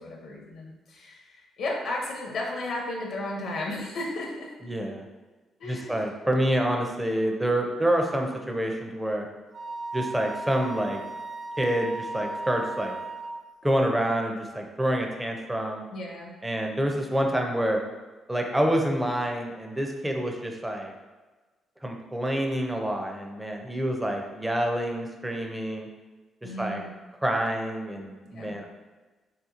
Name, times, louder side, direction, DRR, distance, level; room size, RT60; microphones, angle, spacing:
voice 1, 0.0-4.5 5.6-6.0 15.9-16.3 26.4-26.9 28.2-28.5, left 2 dB, 70° left, -1 dB, 0.5 m, -34 dB
voice 2, 4.6-5.0 5.6-9.3 9.9-11.0 11.6-12.9 13.6-15.8 16.4-17.8 18.3-20.9 21.8-25.9 26.4-26.8 27.2-28.7, right 1 dB, 10° right, 2 dB, 0.4 m, -27 dB
Wind instrument woodwind instrument, 9.5-13.4, right 2 dB, 45° right, 0.7 m, -36 dB
3.4 x 2.8 x 2.4 m, 1.3 s
cardioid pair, 90°, 0 cm